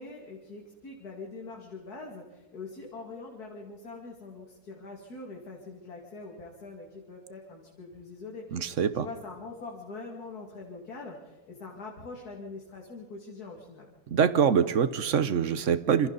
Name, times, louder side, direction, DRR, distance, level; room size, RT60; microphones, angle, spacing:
voice 1, 0.0-13.9, left 3 dB, 80° left, 0 dB, 2.9 m, -43 dB
voice 2, 8.5-9.1 14.1-16.1, right 7 dB, 60° right, 14 dB, 1.2 m, -24 dB
26.5 x 25.5 x 4.0 m, 1.2 s
omnidirectional pair, 1.6 m